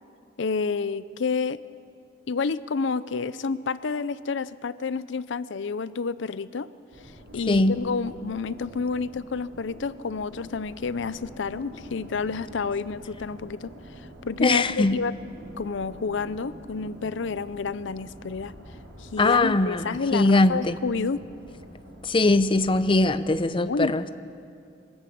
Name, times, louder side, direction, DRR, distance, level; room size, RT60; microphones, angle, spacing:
voice 1, 0.4-1.6 2.3-6.7 7.3-13.7 14.3-15.1 15.6-18.5 19.0-21.2 23.5-24.1, left 5 dB, 70° left, 16 dB, 0.5 m, -29 dB
sound 1, 6.9-23.4, equal, 80° right, 4.5 m, -46 dB
voice 2, 7.5-7.8 14.4-15.0 19.2-20.8 22.0-24.0, left 2 dB, 25° left, 12 dB, 0.6 m, -21 dB
23.0 x 13.5 x 8.6 m, 2.4 s
head